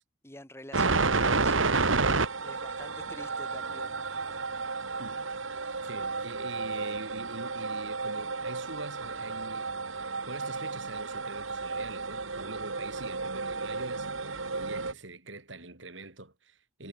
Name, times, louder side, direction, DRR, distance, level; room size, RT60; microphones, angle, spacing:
voice 1, 0.2-1.7 2.4-4.5, left 1 dB, 15° left, 4.8 m, -49 dB
sound 1, 0.7-14.9, right 4 dB, 80° right, 2.2 m, -31 dB
voice 2, 5.0-5.3 5.8-9.7 10.3-16.9, right 2 dB, 65° right, 4.9 m, -44 dB
head